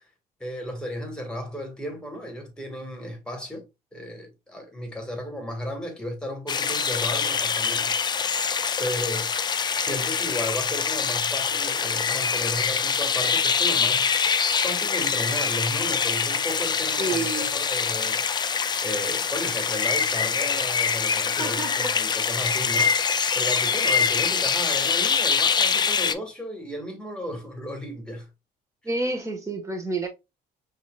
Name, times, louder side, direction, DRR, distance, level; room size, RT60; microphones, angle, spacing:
voice 1, 0.4-3.6 3.9-7.9 8.8-9.3 9.7-18.5 18.8-22.9 23.3-28.3, equal, 5° left, 1.7 m, -34 dB
sound 1, 6.5-26.1, left 6 dB, 25° left, 0.4 m, -24 dB
voice 2, 17.0-17.5 21.4-22.0 23.6-23.8 28.8-30.1, right 2 dB, 20° right, 1.4 m, -29 dB
5.6 x 2.8 x 2.4 m
cardioid pair, 110°, 17 cm